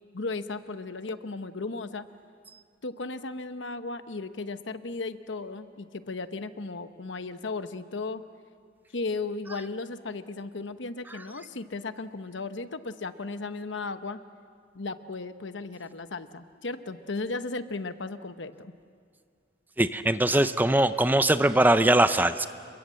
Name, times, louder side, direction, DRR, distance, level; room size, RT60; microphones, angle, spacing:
voice 1, 0.1-2.1 2.8-8.2 8.9-14.2 14.7-18.7, left 3 dB, 85° left, 11 dB, 1.0 m, -35 dB
voice 2, 19.8-22.5, right 1 dB, 10° right, 11 dB, 0.6 m, -21 dB
28.0 x 22.5 x 7.7 m, 2.1 s
head